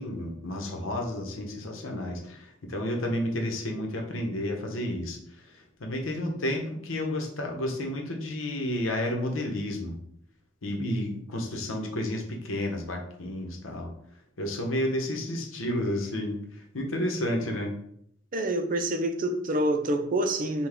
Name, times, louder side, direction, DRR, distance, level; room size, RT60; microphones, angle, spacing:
voice 1, 0.0-5.2 5.8-9.9 10.6-13.9 14.4-16.4 16.7-17.8, left 1 dB, 90° left, 0.9 m, -31 dB
voice 2, 10.8-11.1 18.3-20.7, right 1 dB, 45° right, 0.5 m, -27 dB
5.7 x 2.3 x 3.4 m
head